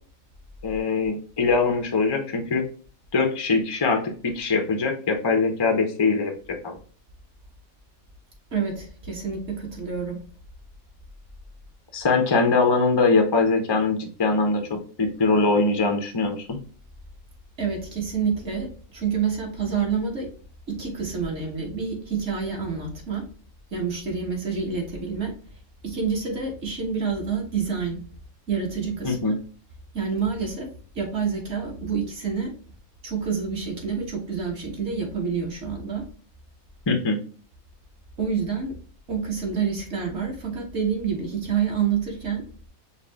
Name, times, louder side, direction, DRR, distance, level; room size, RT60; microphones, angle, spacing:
voice 1, 0.6-2.6 3.1-6.3 6.6-6.8 11.9-16.6 29.0-29.3 36.9-37.2, left 3 dB, 40° left, 4 dB, 0.3 m, -22 dB
voice 2, 8.5-10.2 17.6-18.7 18.9-20.3 20.7-23.2 23.7-25.3 25.8-28.0 28.5-29.4 29.9-30.7 30.9-32.5 33.0-36.0 38.2-38.7 39.1-42.4, right 6 dB, 50° right, 0 dB, 1.5 m, -28 dB
5.7 x 2.4 x 3.4 m, 0.42 s
omnidirectional pair, 1.5 m